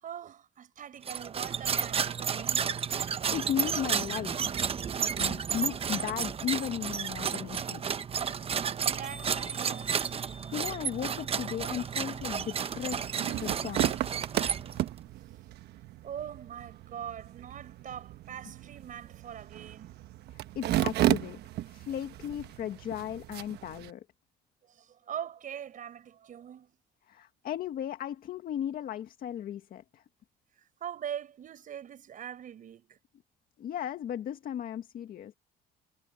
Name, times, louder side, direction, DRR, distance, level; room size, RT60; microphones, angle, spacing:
voice 1, 0.0-2.7 8.5-10.1 16.0-19.9 24.6-26.8 30.5-33.0, right 9 dB, 50° right, 4.8 m, -42 dB
sound 1, 1.0-15.0, right 7 dB, 35° right, 0.9 m, -32 dB
voice 2, 3.1-4.5 5.2-7.8 10.5-13.9 20.3-21.4 21.7-24.1 27.1-30.0 33.6-35.3, left 10 dB, 60° left, 1.9 m, -36 dB
sound 2, 9.0-13.0, equal, 5° right, 6.0 m, -52 dB
sound 3, 12.7-23.9, right 14 dB, 75° right, 1.2 m, -34 dB
cardioid pair, 110°, 17 cm